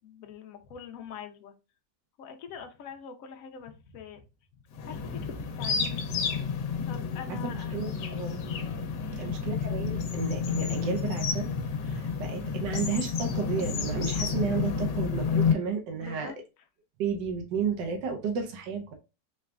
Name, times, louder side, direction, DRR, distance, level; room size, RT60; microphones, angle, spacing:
voice 1, 0.0-1.5 2.2-4.2 4.8-6.1 6.8-7.8 9.0-9.4 16.0-16.4, left 7 dB, 60° left, 6 dB, 1.0 m, -44 dB
sound 1, 4.7-15.5, left 5 dB, 80° left, 1.4 m, -30 dB
voice 2, 7.4-8.4 9.2-11.5 11.8-16.3 17.0-18.9, right 6 dB, 90° right, 4 dB, 1.5 m, -32 dB
4.0 x 3.3 x 2.4 m, 0.29 s
omnidirectional pair, 1.9 m